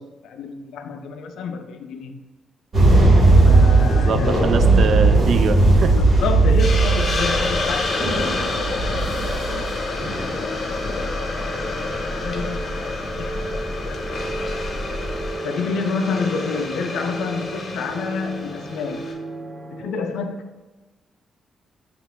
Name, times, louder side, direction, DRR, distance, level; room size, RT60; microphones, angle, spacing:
voice 1, 0.0-2.1 3.4-4.7 5.0-5.1 5.9-7.9 8.7-8.9 9.5-10.5 10.8-11.1 11.4-11.6 12.1-13.6 13.9-14.6 15.4-19.1 19.7-20.4, left 4 dB, 80° left, 7 dB, 0.3 m, -29 dB
sound 1, 2.7-15.3, right 2 dB, 45° right, 1.5 m, -18 dB
voice 2, 3.9-5.9, right 6 dB, 65° right, 9 dB, 0.3 m, -24 dB
Hiss, 6.6-19.1, left 3 dB, 50° left, 0.8 m, -29 dB
sound 2, 10.3-19.8, right 2 dB, 20° right, 0.7 m, -35 dB
6.0 x 2.8 x 2.2 m, 1.2 s
cardioid pair, 65°, 0 cm